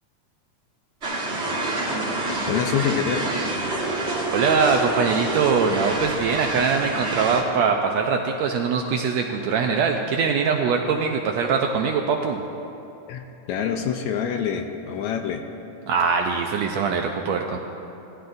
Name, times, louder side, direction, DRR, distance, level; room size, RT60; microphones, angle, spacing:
sound 1, 1.0-7.4, right 2 dB, 40° right, 1.0 m, -27 dB
voice 1, 2.5-3.3 13.1-15.4, left 8 dB, 80° left, 5 dB, 1.9 m, -26 dB
voice 2, 4.3-12.4 15.9-17.6, right 5 dB, 80° right, 3 dB, 1.6 m, -22 dB
17.5 x 13.5 x 2.6 m, 2.8 s
omnidirectional pair, 3.6 m